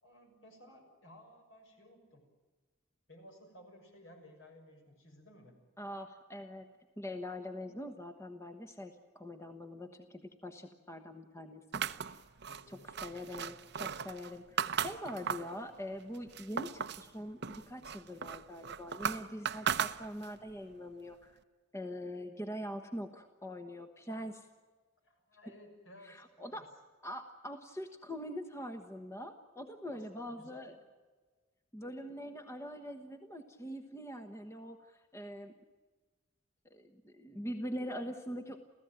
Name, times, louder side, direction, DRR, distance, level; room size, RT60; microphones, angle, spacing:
voice 1, 0.0-2.2 3.1-5.6 12.5-13.6 25.0-26.7 29.9-30.7, left 1 dB, 65° left, 4 dB, 6.5 m, -57 dB
voice 2, 5.8-11.6 12.7-21.3 21.7-24.5 26.0-26.7 27.0-30.7 31.7-35.5 36.6-38.6, equal, 15° left, 6 dB, 1.2 m, -43 dB
sound 1, 11.7-15.6 16.0-17.1 17.4-20.4, right 7 dB, 55° right, 0.8 m, -37 dB
29.0 x 15.5 x 9.1 m, 1.4 s
head